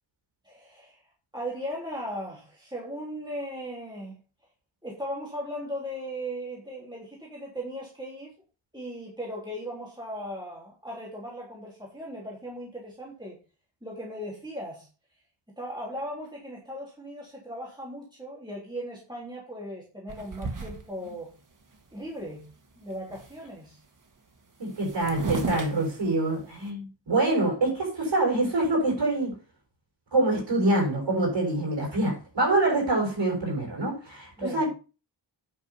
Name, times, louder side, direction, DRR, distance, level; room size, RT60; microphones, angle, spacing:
voice 1, 0.4-1.0 1.3-4.2 4.8-8.3 8.7-13.4 13.8-14.9 15.6-21.3 21.9-22.4 22.8-23.8 34.4-34.7, equal, 10° right, 3.3 m, -37 dB
sound 1, 20.1-21.2 21.7-21.8 22.0-22.5 22.8-23.5 24.4-24.5 24.6-26.7, right 3 dB, 45° right, 2.0 m, -35 dB
voice 2, 24.6-29.3 30.1-34.7, right 2 dB, 75° right, 6.6 m, -25 dB
9.5 x 6.7 x 5.7 m
wide cardioid pair, 125°, 44 cm